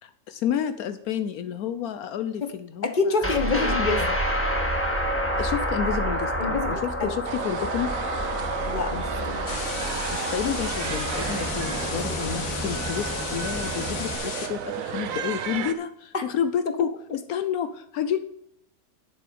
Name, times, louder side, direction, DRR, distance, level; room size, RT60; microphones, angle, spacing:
voice 1, 0.0-4.2 5.4-7.9 10.1-18.2, left 9 dB, 75° left, 10 dB, 1.1 m, -30 dB
voice 2, 2.8-4.0 6.4-7.1 8.6-9.6 12.0-12.1 16.1-16.2, left 4 dB, 35° left, 7 dB, 1.1 m, -27 dB
sound 1, 3.2-14.2, equal, 10° left, 1.4 m, -29 dB
sound 2, 7.2-15.7, right 8 dB, 65° right, 1.1 m, -34 dB
sound 3, 9.5-14.5, left 5 dB, 55° left, 1.4 m, -34 dB
11.0 x 7.2 x 5.1 m, 0.74 s
omnidirectional pair, 1.6 m